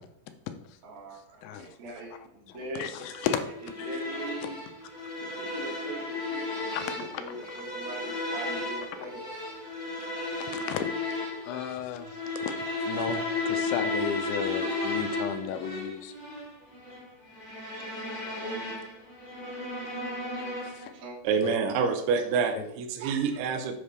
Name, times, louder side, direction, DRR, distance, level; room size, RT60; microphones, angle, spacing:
voice 1, 0.8-2.9 3.6-4.6 5.4-9.3 18.4-18.8 20.9-21.2, right 2 dB, 40° right, -3 dB, 2.2 m, -41 dB
voice 2, 1.4-1.7 2.5-3.4 3.8-3.9 4.4-4.5 6.7-7.2 10.4-10.8 11.5-12.5 12.9-16.1 20.3-20.9 21.4-21.6 22.5-22.6, left 8 dB, 80° left, 8 dB, 2.8 m, -34 dB
sound 1, 3.0-21.0, left 2 dB, 40° left, 0.6 m, -34 dB
voice 3, 21.2-23.8, right 6 dB, 75° right, 7 dB, 2.5 m, -27 dB
8.0 x 7.0 x 3.2 m, 0.74 s
omnidirectional pair, 5.5 m